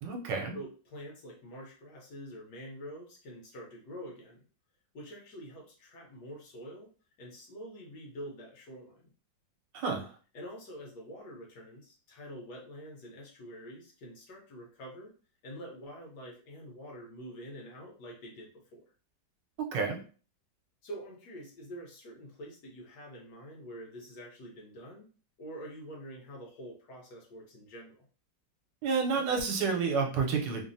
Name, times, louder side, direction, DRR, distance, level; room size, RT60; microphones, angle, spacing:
voice 1, 0.0-0.6 9.7-10.1 19.6-20.0 28.8-30.7, right 5 dB, 75° right, 1 dB, 1.2 m, -30 dB
voice 2, 0.5-4.4 4.9-6.9 7.2-9.1 10.3-15.1 15.4-18.8 20.8-25.1 25.4-28.0, equal, 70° left, -1 dB, 1.4 m, -46 dB
3.3 x 2.0 x 2.6 m, 0.39 s
omnidirectional pair, 1.9 m